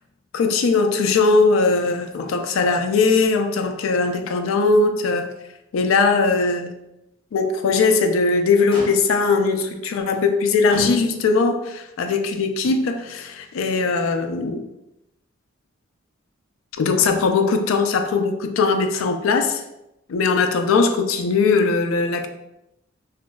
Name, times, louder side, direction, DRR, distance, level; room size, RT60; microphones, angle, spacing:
voice 1, 0.3-5.3 5.7-6.7 7.3-14.6 16.8-19.6 20.1-22.3, left 4 dB, 75° left, 6 dB, 0.4 m, -20 dB
Motor vehicle (road), 1.7-2.4 2.7-2.8 3.3-4.3 4.7-4.8 5.4-5.5 7.7-8.1 8.7-9.4 10.1-10.3 10.7-11.5 12.6-12.7, left 1 dB, 25° left, 0.7 m, -38 dB
2.9 x 2.5 x 2.2 m, 0.88 s
head